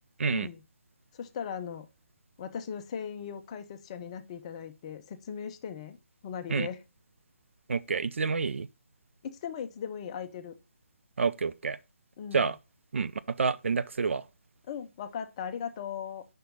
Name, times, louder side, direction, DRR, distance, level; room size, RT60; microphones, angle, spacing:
voice 1, 0.3-0.6 1.1-1.9 2.4-6.0 6.2-6.8 9.2-10.5 12.2-12.5 14.7-16.3, left 7 dB, 25° left, 0.6 m, -38 dB
voice 2, 7.7-8.7 11.2-11.8 12.3-12.6 12.9-14.2, right 5 dB, 60° right, 0.4 m, -28 dB
5.3 x 4.4 x 5.2 m
figure-of-eight pair, 145°, 7 cm